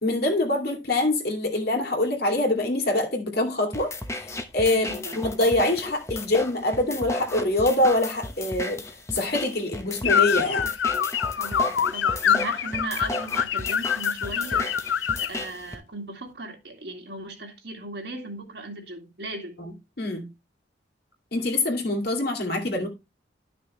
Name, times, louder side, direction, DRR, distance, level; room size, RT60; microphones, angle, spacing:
voice 1, 0.0-3.9 4.2-8.8 9.1-10.7 19.6-19.7 20.0-20.3 21.3-22.9, left 2 dB, 55° left, 2.5 m, -24 dB
sound 1, 3.7-15.7, left 2 dB, 15° left, 0.9 m, -34 dB
voice 2, 4.7-5.2 11.4-19.6, right 2 dB, 65° right, 2.2 m, -37 dB
sound 2, 10.0-15.4, left 8 dB, 90° left, 0.5 m, -25 dB
12.0 x 6.1 x 3.2 m
head